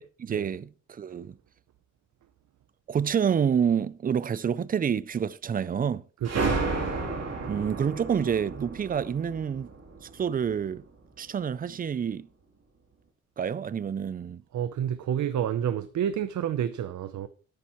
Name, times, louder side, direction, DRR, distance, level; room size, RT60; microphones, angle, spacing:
voice 1, 0.0-1.4 2.9-6.0 7.5-9.7 10.0-10.8 11.2-12.3 13.4-14.4, right 7 dB, 30° right, 0.4 m, -28 dB
sound 1, 6.2-10.7, right 3 dB, 60° right, 3.2 m, -32 dB
voice 2, 6.2-6.7 14.5-17.3, right 9 dB, 80° right, 0.7 m, -29 dB
13.0 x 10.0 x 3.0 m
wide cardioid pair, 165°, 29 cm